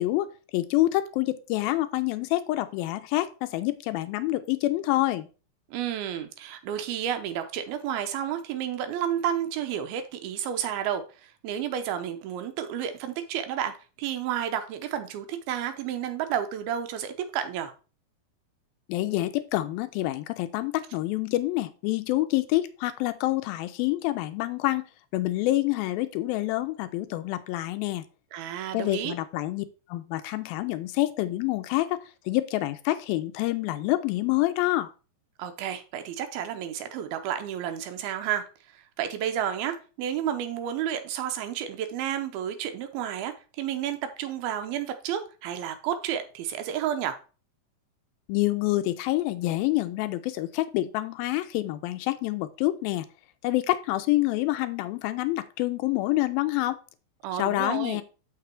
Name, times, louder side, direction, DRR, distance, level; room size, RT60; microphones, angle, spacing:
voice 1, 0.0-5.3 18.9-24.8 25.1-28.0 28.7-34.9 48.3-53.1 53.4-56.8 57.4-58.0, left 17 dB, 80° left, 11 dB, 2.3 m, -27 dB
voice 2, 5.7-17.7 28.3-29.1 35.4-38.5 38.7-47.2 57.2-58.0, right 9 dB, 85° right, 8 dB, 2.6 m, -31 dB
6.7 x 6.0 x 4.4 m, 0.35 s
omnidirectional pair, 4.3 m